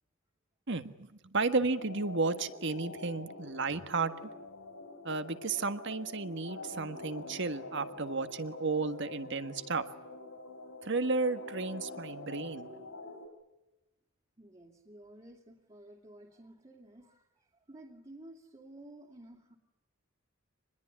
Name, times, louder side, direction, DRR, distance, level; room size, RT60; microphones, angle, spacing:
voice 1, 0.7-4.1 5.0-9.8 10.8-12.7, right 3 dB, 65° right, 10 dB, 1.6 m, -33 dB
sound 1, 1.7-13.3, left 2 dB, 80° left, 5.6 m, -46 dB
voice 2, 14.4-19.6, right 1 dB, 25° right, 0 dB, 2.7 m, -53 dB
26.5 x 21.0 x 9.9 m, 1.0 s
head